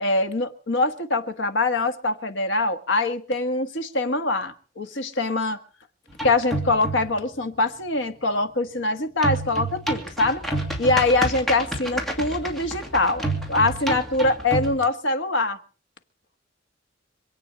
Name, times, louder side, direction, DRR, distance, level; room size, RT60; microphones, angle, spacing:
voice 1, 0.0-5.6 6.2-10.4 10.8-15.6, left 2 dB, 80° left, 8 dB, 1.6 m, -23 dB
sound 1, 6.1-7.2 9.2-14.8, right 1 dB, ahead, 2.8 m, -29 dB
26.5 x 8.9 x 5.2 m, 0.41 s
head